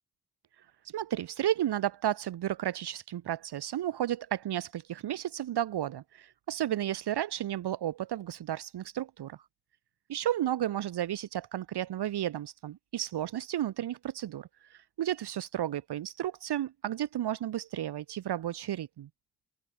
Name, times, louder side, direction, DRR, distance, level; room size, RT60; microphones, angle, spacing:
voice 1, 0.9-9.4 10.1-19.1, right 12 dB, 70° right, 0.8 m, -33 dB
open air
cardioid pair, 50°, 42 cm